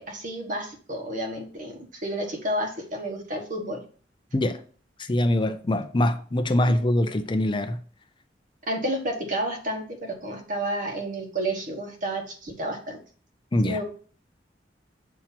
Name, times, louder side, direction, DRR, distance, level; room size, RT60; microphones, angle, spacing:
voice 1, 0.0-3.8 8.7-13.0 13.6-13.8, right 1 dB, 50° right, 1.3 m, -31 dB
voice 2, 5.0-7.8 13.5-13.8, left 1 dB, 30° left, 0.5 m, -23 dB
7.3 x 2.9 x 5.8 m
head